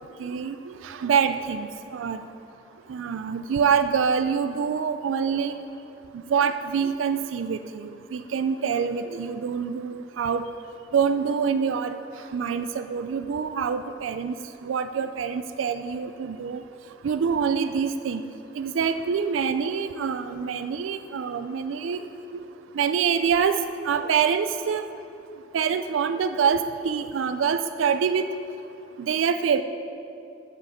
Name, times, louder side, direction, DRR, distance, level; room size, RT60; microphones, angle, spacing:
voice 1, 0.2-2.2 2.9-5.6 6.3-10.4 10.9-12.0 12.3-14.3 14.6-16.6 17.0-18.2 18.6-22.0 22.3-22.4 22.7-23.6 23.9-24.9 25.5-28.3 29.0-29.6, right 6 dB, 90° right, 10 dB, 0.4 m, -25 dB
7.7 x 6.0 x 7.0 m, 2.6 s
head